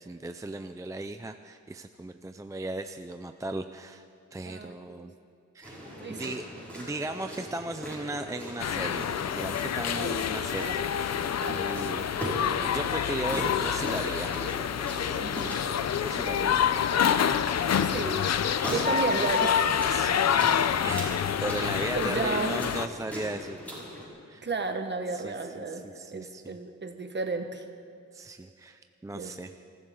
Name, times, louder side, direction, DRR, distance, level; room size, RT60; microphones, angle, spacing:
voice 1, 0.0-4.1 4.3-5.1 5.5-6.5 6.7-11.2 11.5-12.1 12.6-14.3 16.0-16.6 18.7-18.9 19.8-20.5 20.8-23.6 24.3-24.4 25.1-26.6 28.1-29.5, right 2 dB, 10° right, 7 dB, 0.4 m, -37 dB
voice 2, 4.4-5.1 6.0-6.2 10.0-10.8 11.4-11.6 15.1-15.6 17.8-18.3 18.7-19.6 20.3-20.4 21.9-22.6 24.4-25.8 26.1-27.6 29.1-29.3, right 3 dB, 35° right, 5 dB, 1.4 m, -33 dB
sound 1, 5.6-24.1, left 1 dB, 5° left, 5.3 m, -40 dB
sound 2, 8.6-22.9, left 8 dB, 60° left, 0.6 m, -27 dB
26.0 x 14.5 x 3.8 m, 2.4 s
wide cardioid pair, 140°, 29 cm